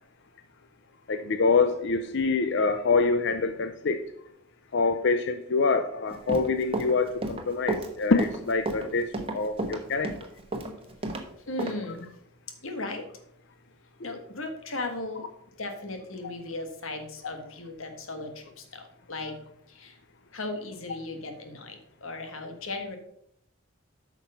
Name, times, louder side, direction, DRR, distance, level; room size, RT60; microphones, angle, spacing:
voice 1, 1.1-4.0 4.7-10.1 14.0-14.1, left 4 dB, 60° left, 9 dB, 0.5 m, -25 dB
Run, 6.1-11.2 11.6-11.7, right 2 dB, 25° right, 1.1 m, -32 dB
voice 2, 11.5-12.1 12.6-13.0 14.0-15.3 15.6-19.4 19.7-20.0 20.3-23.0, left 2 dB, 75° left, 6 dB, 1.6 m, -36 dB
8.6 x 6.1 x 5.5 m, 0.74 s
head